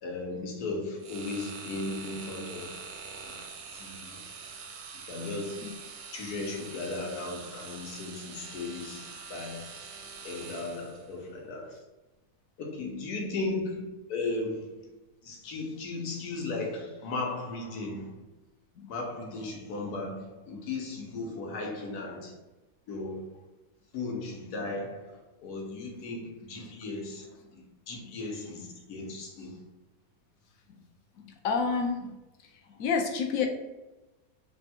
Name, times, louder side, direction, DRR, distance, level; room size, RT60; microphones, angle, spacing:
voice 1, 0.0-2.8 3.2-3.4 3.7-4.2 5.1-5.7 6.1-9.7 10.2-11.8 12.6-14.8 15.2-18.1 18.9-22.4 22.9-23.4 23.9-27.3 27.5-29.6, left 3 dB, 85° left, 0 dB, 1.4 m, -36 dB
sound 1, 1.0-11.1, right 5 dB, 65° right, 0.7 m, -44 dB
voice 2, 31.2-32.2 32.8-33.5, left 5 dB, 70° left, 3 dB, 1.0 m, -30 dB
3.5 x 2.3 x 4.1 m, 1.1 s
omnidirectional pair, 1.6 m